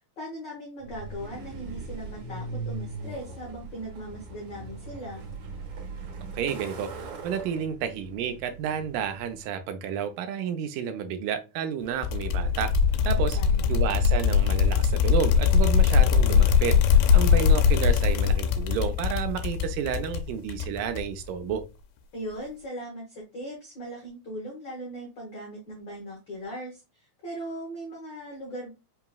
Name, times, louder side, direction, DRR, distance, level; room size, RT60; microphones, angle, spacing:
voice 1, 0.2-5.2 13.0-13.8 22.1-28.7, right 1 dB, 75° left, 1.0 m, -39 dB
Truck, 0.8-9.5, right 3 dB, 65° right, 2.0 m, -40 dB
voice 2, 6.4-12.7 13.1-13.4 13.7-16.8 17.1-21.6, right 8 dB, 80° right, 2.2 m, -31 dB
sound 1, 12.0-21.3, left 7 dB, 90° left, 2.3 m, -21 dB
5.6 x 2.9 x 2.2 m
omnidirectional pair, 3.8 m